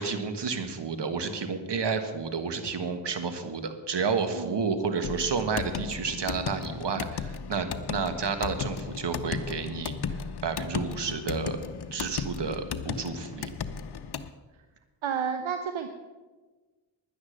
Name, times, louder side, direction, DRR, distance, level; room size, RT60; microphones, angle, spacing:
voice 1, 0.0-10.0 10.4-11.6 11.9-13.5, right 5 dB, 60° right, 8 dB, 1.6 m, -31 dB
sound 1, 5.0-14.3, left 6 dB, 55° left, 0.8 m, -35 dB
voice 2, 15.0-15.9, right 7 dB, 75° right, 7 dB, 0.9 m, -30 dB
11.0 x 10.0 x 6.4 m, 1.3 s
cardioid pair, 55°, 48 cm